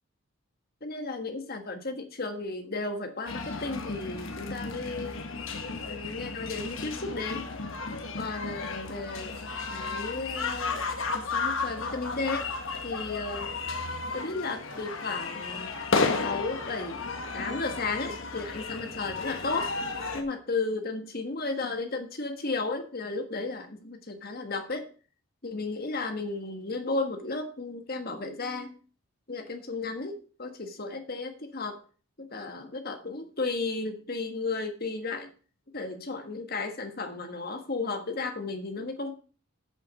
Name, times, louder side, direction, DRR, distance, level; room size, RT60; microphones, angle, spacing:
voice 1, 0.8-5.2 5.9-7.4 8.2-9.4 9.7-10.8 11.1-12.5 12.8-13.6 14.1-15.7 16.2-17.1 17.3-19.7 20.1-24.9 25.4-28.7 29.3-31.8 32.2-35.3 35.7-39.1, left 3 dB, 45° left, 6 dB, 1.5 m, -34 dB
sound 1, 3.3-20.2, left 4 dB, 70° left, 1.5 m, -33 dB
8.5 x 7.0 x 6.3 m, 0.40 s
head